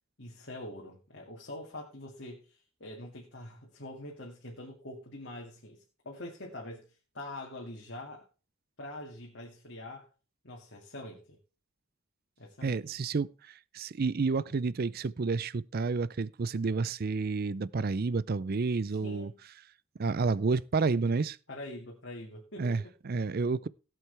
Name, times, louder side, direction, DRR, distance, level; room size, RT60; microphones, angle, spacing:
voice 1, 0.2-8.2 8.8-10.1 10.4-11.4 12.4-12.8 18.9-19.4 21.5-22.8, left 1 dB, 55° left, 2.2 m, -44 dB
voice 2, 12.6-19.3 20.0-21.4 22.6-23.7, right 4 dB, 45° right, 0.4 m, -30 dB
17.0 x 7.8 x 3.3 m
head